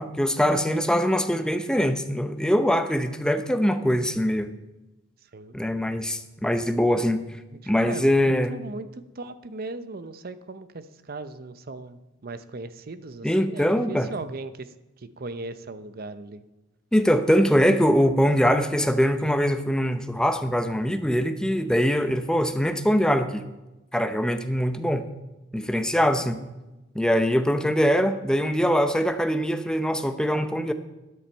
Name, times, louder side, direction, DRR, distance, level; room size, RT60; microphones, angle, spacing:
voice 1, 0.0-4.5 5.5-7.2 7.7-8.5 13.2-14.1 16.9-23.5 23.9-25.1 25.5-26.5 26.9-30.7, equal, 5° left, 9 dB, 0.7 m, -22 dB
voice 2, 7.5-16.4, right 2 dB, 50° right, 12 dB, 0.7 m, -38 dB
13.0 x 10.0 x 4.5 m, 1.0 s
head